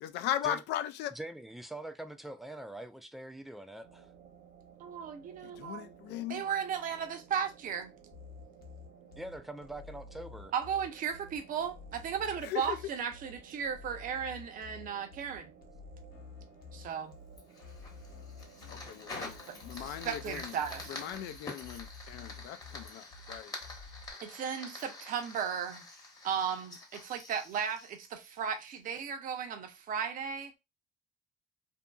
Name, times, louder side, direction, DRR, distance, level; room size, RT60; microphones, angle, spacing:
voice 1, 0.0-1.1 5.4-6.4 12.4-12.8 18.7-20.5 20.9-23.5, left 11 dB, 85° left, 0.4 m, -38 dB
voice 2, 1.1-4.1 9.2-10.5, right 1 dB, ahead, 0.4 m, -43 dB
sound 1, 3.8-21.3, right 6 dB, 70° right, 0.9 m, -57 dB
voice 3, 4.8-5.9 6.3-7.9 10.5-15.5 16.7-17.1 19.7-21.0 24.2-25.8 26.2-30.6, right 7 dB, 55° right, 0.6 m, -35 dB
sound 2, 8.1-24.1, left 5 dB, 65° left, 0.8 m, -51 dB
Fire, 17.4-28.7, left 2 dB, 20° left, 1.0 m, -47 dB
2.7 x 2.6 x 2.3 m
cardioid pair, 110°, 17 cm